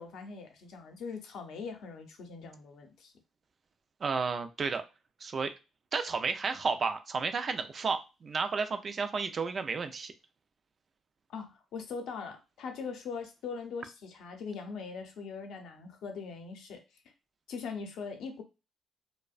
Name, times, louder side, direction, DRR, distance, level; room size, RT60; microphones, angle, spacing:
voice 1, 0.0-3.1 11.3-16.8 17.5-18.4, left 5 dB, 80° left, 4 dB, 0.6 m, -41 dB
voice 2, 4.0-4.8 5.2-5.5 5.9-10.1, right 4 dB, 45° right, 9 dB, 0.3 m, -32 dB
2.6 x 2.1 x 2.3 m, 0.28 s
cardioid pair, 90°, 0 cm